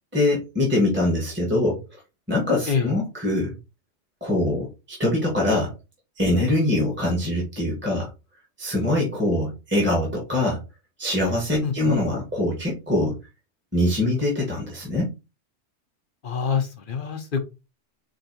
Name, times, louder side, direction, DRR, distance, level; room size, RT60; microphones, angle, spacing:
voice 1, 0.1-1.8 2.3-3.6 4.2-5.7 6.2-8.1 8.6-10.6 11.0-13.2 13.7-15.1, left 1 dB, 10° right, -3 dB, 1.3 m, -23 dB
voice 2, 16.2-17.4, left 6 dB, 50° left, 6 dB, 0.8 m, -25 dB
4.7 x 2.9 x 2.8 m, 0.27 s
omnidirectional pair, 1.3 m